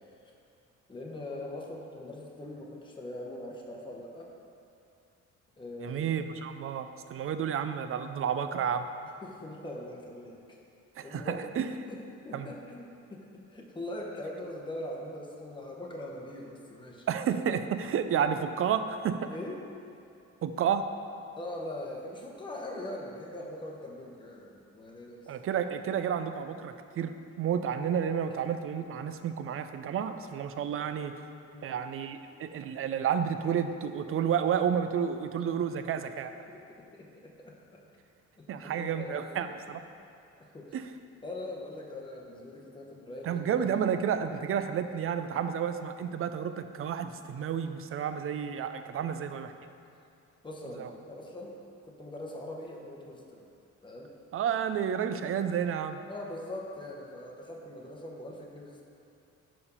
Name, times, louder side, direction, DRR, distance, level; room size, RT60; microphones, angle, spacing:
voice 1, 0.9-4.3 5.6-6.2 9.2-10.4 11.0-11.5 11.9-17.1 19.3-19.6 21.4-25.3 31.5-31.7 35.6-35.7 36.5-36.6 36.9-37.8 38.4-39.5 40.4-40.7 41.2-43.6 48.9-49.1 50.4-51.6 51.8-53.5 53.8-54.1 56.1-58.8, left 1 dB, 15° left, -1 dB, 0.9 m, -42 dB
voice 2, 5.8-8.9 11.0-11.7 12.3-12.5 17.1-19.3 20.4-20.9 25.3-31.1 31.6-36.3 38.5-39.8 40.7-40.9 43.2-49.5 50.8-50.9 54.3-56.0, right 8 dB, 45° right, 9 dB, 0.4 m, -31 dB
5.1 x 4.8 x 5.4 m, 2.6 s
cardioid pair, 90°, 30 cm